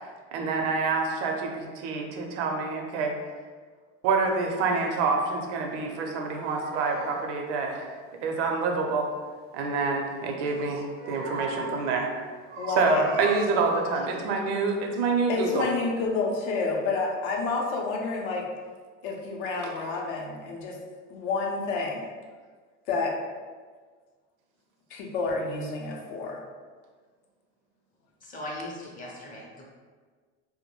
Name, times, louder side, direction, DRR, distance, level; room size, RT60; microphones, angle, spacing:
voice 1, 0.3-3.2 4.0-7.9 8.2-9.1 9.5-12.1 12.8-15.7 19.6-19.7, right 4 dB, 75° right, 2 dB, 0.6 m, -27 dB
sound 1, 5.7-7.3 10.5-12.0 12.5-14.3 14.8-15.0, right 3 dB, 30° right, 0.4 m, -39 dB
voice 2, 12.6-13.0 15.3-18.4 19.0-20.8 21.1-22.1 22.9-23.1 24.9-26.4, left 4 dB, 65° left, 0 dB, 0.6 m, -29 dB
voice 3, 28.2-29.7, left 1 dB, 25° left, -3 dB, 0.5 m, -39 dB
2.2 x 2.1 x 2.9 m, 1.5 s
supercardioid pair, 120°, 36 cm